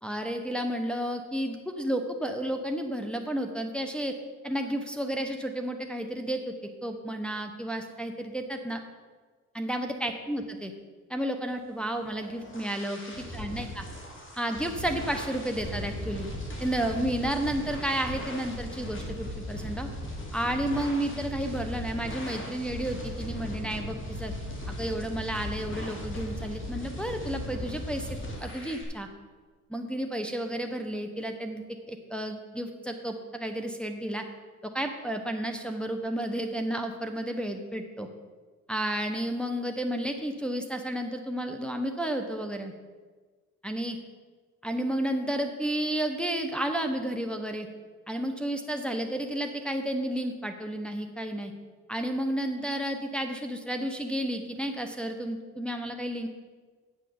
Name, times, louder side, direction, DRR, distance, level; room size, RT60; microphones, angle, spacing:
voice 1, 0.0-4.1 4.4-6.5 6.8-8.8 9.5-10.7 11.1-13.8 14.4-16.3 16.6-19.9 20.3-24.3 24.7-29.1 29.7-34.2 34.6-38.1 38.7-42.7 43.6-44.0 44.6-47.7 48.1-51.5 51.9-56.3, right 1 dB, 5° left, 3 dB, 1.0 m, -32 dB
sound 1, 11.9-28.8, left 1 dB, 40° left, 2.8 m, -37 dB
9.0 x 6.3 x 7.0 m, 1.4 s
cardioid pair, 90°, 30 cm